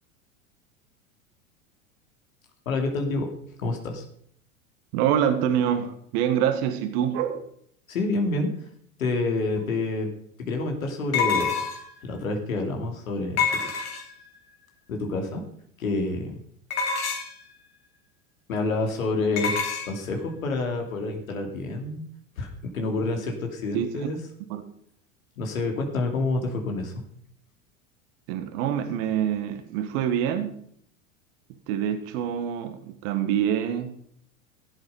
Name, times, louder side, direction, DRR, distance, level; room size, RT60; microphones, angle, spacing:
voice 1, 2.7-3.3 3.6-4.0 7.9-8.5 9.0-10.1 10.5-11.5 12.0-13.6 14.9-15.4 15.8-16.4 18.5-22.0 22.4-24.2 25.4-26.9, left 2 dB, 75° left, 2.6 m, -28 dB
voice 2, 4.9-7.4 23.7-24.1 24.5-24.6 28.3-30.6 31.7-34.0, right 9 dB, 55° right, 1.6 m, -26 dB
sound 1, 9.6-9.7 11.1-12.0 13.4-14.3 16.7-17.4 19.4-19.9, left 6 dB, 40° left, 3.1 m, -26 dB
15.5 x 7.9 x 5.5 m
hypercardioid pair, 85°, 41 cm